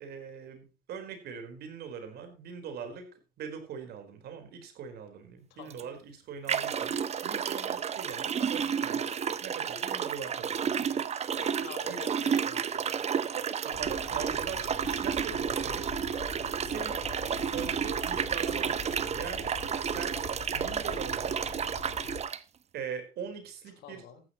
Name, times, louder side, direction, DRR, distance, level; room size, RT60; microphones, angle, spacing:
voice 1, 0.0-3.1 3.4-9.1 9.4-11.0 11.9-12.0 13.3-15.9 16.6-17.0 17.4-20.2 20.5-21.4 22.7-24.0, right 7 dB, 70° right, 6 dB, 4.3 m, -41 dB
voice 2, 5.5-5.9 11.4-12.8 23.8-24.2, left 6 dB, 80° left, 6 dB, 4.5 m, -47 dB
sound 1, 5.7-5.8 6.5-22.4, right 7 dB, 40° right, 1.0 m, -31 dB
sound 2, 13.7-22.2, left 6 dB, 50° left, 3.6 m, -44 dB
14.5 x 12.0 x 3.0 m, 0.31 s
cardioid pair, 110°, 17 cm